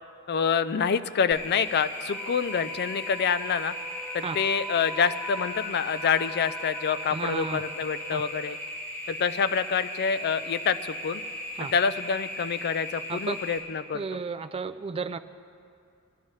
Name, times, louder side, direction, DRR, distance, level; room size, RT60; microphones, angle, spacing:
voice 1, 0.3-3.7 4.1-8.6 9.1-11.2 11.7-14.2, left 6 dB, 45° left, 13 dB, 0.4 m, -27 dB
sound 1, 1.3-13.6, left 1 dB, 10° left, 3.4 m, -37 dB
Wind instrument woodwind instrument, 2.1-8.5, left 1 dB, 5° right, 3.8 m, -42 dB
voice 2, 7.1-7.6 8.1-8.2 11.6-11.7 13.1-13.4 13.9-15.2, right 4 dB, 25° right, 11 dB, 0.3 m, -33 dB
21.5 x 13.0 x 3.2 m, 2.4 s
head